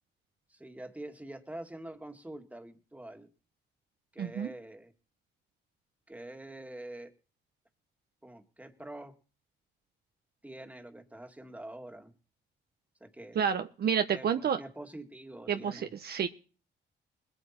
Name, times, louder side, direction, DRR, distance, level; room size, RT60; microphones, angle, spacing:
voice 1, 0.5-3.3 4.1-4.9 6.1-7.1 8.2-9.1 10.4-12.1 13.0-13.5 14.1-15.9, right 1 dB, 5° right, 5 dB, 1.9 m, -45 dB
voice 2, 4.2-4.5 13.3-14.6 15.5-16.3, right 7 dB, 55° right, 7 dB, 0.8 m, -29 dB
21.0 x 8.1 x 4.4 m, 0.37 s
cardioid pair, 90°, 20 cm